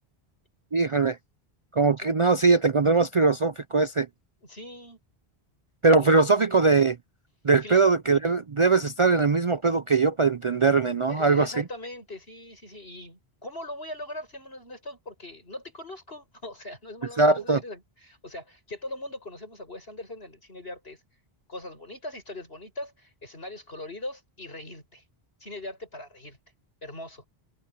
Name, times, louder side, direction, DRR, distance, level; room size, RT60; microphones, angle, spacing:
voice 1, 0.7-1.2 1.7-4.1 5.8-7.0 7.4-11.5 17.2-17.6, right 4 dB, 40° right, 0.5 m, -21 dB
voice 2, 4.4-5.0 6.0-6.2 7.6-7.8 11.1-21.0 21.5-25.0 25.4-26.4 26.8-27.2, left 1 dB, 70° left, 8.2 m, -40 dB
open air
omnidirectional pair, 1.0 m